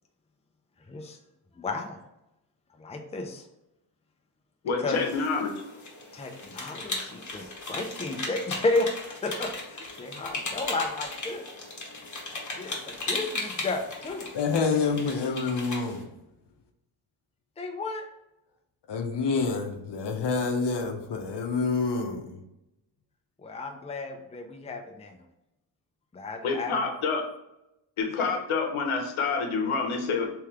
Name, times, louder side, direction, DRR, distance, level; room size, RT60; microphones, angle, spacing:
voice 1, 0.9-1.2 1.5-2.0 2.8-3.5 4.8-5.2 6.1-11.4 12.5-14.3 17.6-18.1 23.4-25.2 26.1-26.8, left 2 dB, 15° left, 0.5 m, -32 dB
voice 2, 4.6-5.5 26.4-27.2 28.0-30.3, left 4 dB, 85° left, 0.9 m, -27 dB
sound 1, 4.9-16.0, left 2 dB, 40° left, 1.2 m, -37 dB
voice 3, 14.3-16.1 18.9-22.4, left 4 dB, 60° left, 0.8 m, -27 dB
3.4 x 3.1 x 3.5 m
wide cardioid pair, 100°, 47 cm